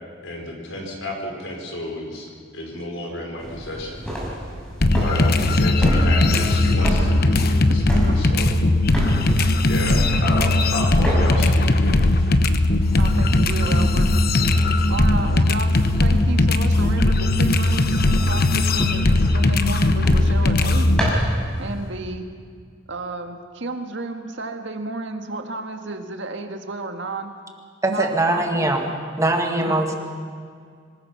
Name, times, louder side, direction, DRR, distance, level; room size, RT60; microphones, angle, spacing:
voice 1, 0.2-4.1 4.9-8.5 9.6-12.0, left 1 dB, 80° left, 0 dB, 5.0 m, -31 dB
sound 1, 3.4-21.9, equal, 5° left, 5.6 m, -32 dB
sound 2, 4.8-21.1, left 2 dB, 50° left, 1.0 m, -18 dB
voice 2, 4.9-5.3 8.1-8.2 13.0-14.1 14.9-20.9 21.6-22.3 22.9-27.3 27.9-28.5 29.6-29.9, right 2 dB, 65° right, 5 dB, 1.9 m, -32 dB
sound 3, 5.4-13.5, equal, 40° right, 3.3 m, -31 dB
voice 3, 27.8-29.9, right 2 dB, 15° right, 3 dB, 2.0 m, -22 dB
26.0 x 19.5 x 5.8 m, 2.1 s
head